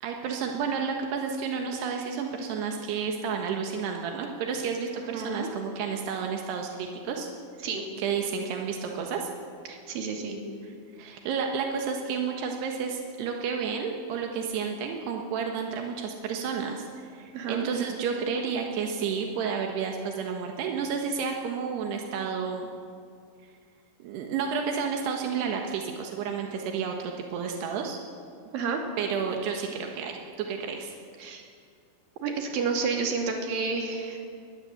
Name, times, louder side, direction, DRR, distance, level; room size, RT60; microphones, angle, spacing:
voice 1, 0.0-7.3 8.0-9.3 11.0-22.7 24.0-28.0 29.0-31.0, right 6 dB, 85° right, 2 dB, 3.5 m, -31 dB
voice 2, 5.1-5.5 7.6-7.9 9.7-10.4 17.3-17.7 28.5-28.8 31.2-31.4 32.2-34.2, right 5 dB, 60° right, 2 dB, 4.3 m, -30 dB
21.5 x 20.5 x 7.9 m, 2.3 s
omnidirectional pair, 4.6 m